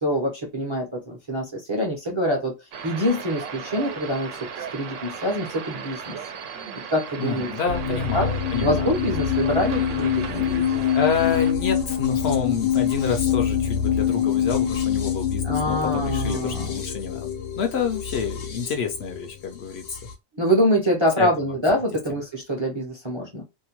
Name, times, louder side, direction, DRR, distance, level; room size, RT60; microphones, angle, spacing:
voice 1, 0.0-2.5 2.8-4.3 4.7-6.2 6.9-7.5 7.9-8.3 8.6-10.6 15.4-16.7 20.4-23.4, equal, 30° right, 0.6 m, -25 dB
sound 1, 2.7-11.5, right 7 dB, 80° right, 0.9 m, -36 dB
voice 2, 7.2-8.9 10.5-10.6 10.9-17.3 17.6-19.8 21.2-21.3 22.1-22.2, left 6 dB, 65° left, 0.7 m, -28 dB
sound 2, 7.7-20.1, left 8 dB, 90° left, 1.1 m, -25 dB
2.7 x 2.1 x 2.8 m
omnidirectional pair, 1.3 m